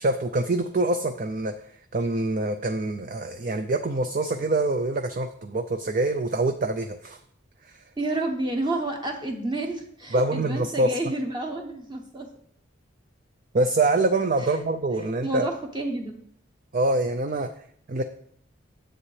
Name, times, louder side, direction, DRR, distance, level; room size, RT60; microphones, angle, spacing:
voice 1, 0.0-1.5 1.9-7.2 7.6-7.8 10.1-11.0 13.5-15.5 16.7-17.5 17.9-18.0, right 2 dB, 40° right, 7 dB, 0.5 m, -25 dB
voice 2, 8.0-12.3 14.4-14.6 15.2-16.1, right 2 dB, 20° right, 2 dB, 0.9 m, -30 dB
10.0 x 7.8 x 3.3 m, 0.63 s
head